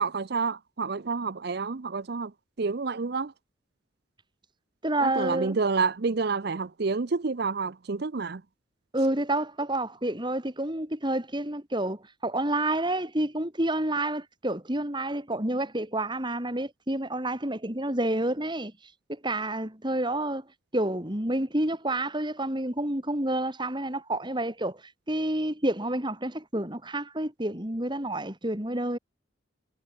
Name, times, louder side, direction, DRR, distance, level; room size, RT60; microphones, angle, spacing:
voice 1, 0.0-2.3 2.6-3.3 5.0-8.4, right 4 dB, 55° right, 0.6 m, -29 dB
voice 2, 4.8-5.6 8.9-18.7 19.1-20.4 20.7-24.8 25.1-29.0, right 1 dB, 25° right, 3.1 m, -29 dB
head